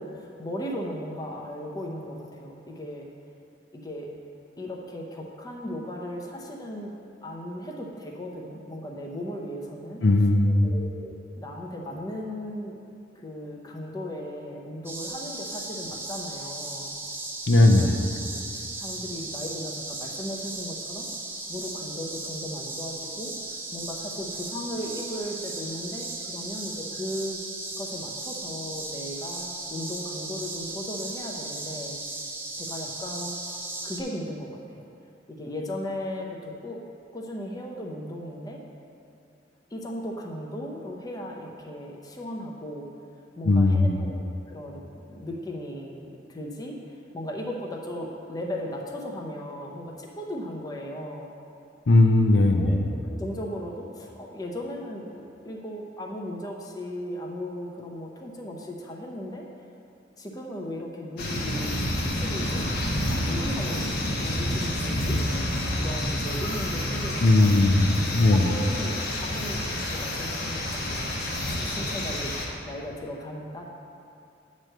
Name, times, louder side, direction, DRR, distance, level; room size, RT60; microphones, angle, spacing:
voice 1, 0.0-3.1 3.7-4.2 4.6-6.9 7.2-10.0 10.5-12.8 13.2-16.9 17.6-17.9 18.3-21.1 21.5-27.4 27.8-32.0 32.5-33.6 33.8-34.8 35.3-36.8 37.1-38.6 39.7-42.9 43.4-44.8 45.1-51.3 52.6-59.5 60.2-65.2 65.7-67.5 68.3-71.1 71.6-72.3 72.6-73.7, equal, 20° left, -1 dB, 0.7 m, -36 dB
voice 2, 10.0-10.7 17.5-18.0 43.4-43.9 51.9-52.8 67.2-68.5, left 2 dB, 75° left, 3 dB, 0.6 m, -18 dB
sound 1, 14.8-34.0, right 2 dB, 15° right, 0.6 m, -36 dB
sound 2, 61.2-72.4, left 1 dB, 55° left, 1.0 m, -29 dB
8.9 x 3.1 x 6.5 m, 2.6 s
head